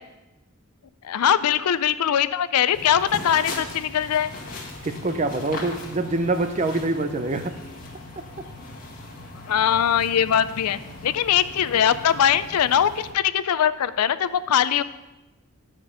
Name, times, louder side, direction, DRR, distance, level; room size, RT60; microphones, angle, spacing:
voice 1, 1.0-4.3 9.5-14.8, left 9 dB, 90° left, 15 dB, 0.4 m, -21 dB
sound 1, 2.7-13.1, left 2 dB, 40° left, 1.6 m, -39 dB
voice 2, 4.8-7.5, right 2 dB, 30° right, 8 dB, 0.6 m, -25 dB
10.5 x 5.2 x 5.6 m, 1.0 s
head